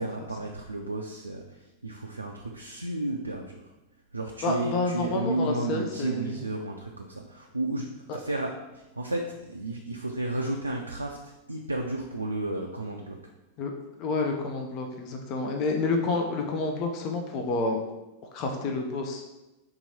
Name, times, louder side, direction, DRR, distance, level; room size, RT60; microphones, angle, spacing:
voice 1, 0.0-3.7 4.1-13.3, right 2 dB, 80° right, 1 dB, 0.3 m, -33 dB
voice 2, 4.4-6.3 8.1-8.2 13.6-13.7 14.0-17.8 18.3-19.2, left 3 dB, 40° left, 3 dB, 0.5 m, -29 dB
3.7 x 2.9 x 4.1 m, 1.0 s
figure-of-eight pair, 90°, 0 cm